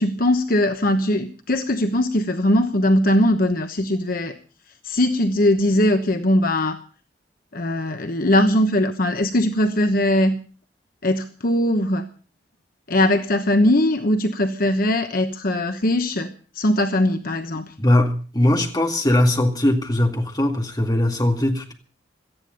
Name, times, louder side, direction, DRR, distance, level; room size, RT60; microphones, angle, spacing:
voice 1, 0.0-4.4 4.8-6.8 7.5-10.4 11.0-12.1 12.9-17.7, left 1 dB, 50° left, 1.1 m, -20 dB
voice 2, 17.8-21.7, left 1 dB, 20° left, 2.2 m, -20 dB
18.0 x 13.5 x 5.2 m
head